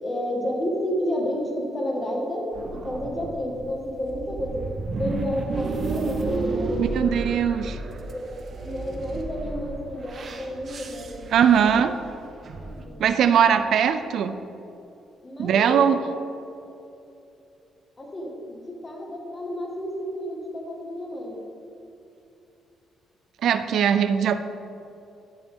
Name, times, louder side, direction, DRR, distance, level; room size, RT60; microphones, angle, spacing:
voice 1, 0.0-4.7 5.0-7.2 8.1-11.8 12.6-13.0 15.2-16.0 18.0-21.4, equal, 30° left, 0 dB, 1.7 m, -31 dB
sound 1, 2.5-12.9, right 3 dB, 50° right, 0.8 m, -32 dB
voice 2, 6.8-7.8 11.3-11.9 13.0-14.4 15.4-16.0 23.4-24.4, right 8 dB, 70° right, 10 dB, 0.4 m, -20 dB
11.5 x 7.0 x 3.6 m, 2.8 s
cardioid pair, 90°, 0 cm